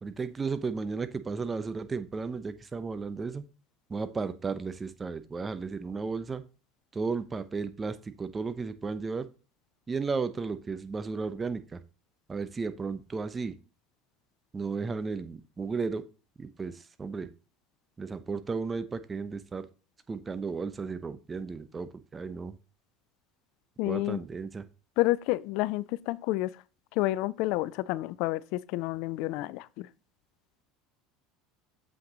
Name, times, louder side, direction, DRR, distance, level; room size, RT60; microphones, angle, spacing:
voice 1, 0.0-3.4 3.9-6.4 6.9-9.3 9.9-11.8 12.3-13.5 14.5-16.0 16.4-17.3 18.0-19.7 20.1-22.6 23.9-24.7, right 4 dB, 25° right, 0.9 m, -34 dB
voice 2, 23.8-24.2 25.0-26.6 26.9-29.9, left 18 dB, 65° left, 0.4 m, -29 dB
7.6 x 5.9 x 3.9 m
hypercardioid pair, 80°, 0 cm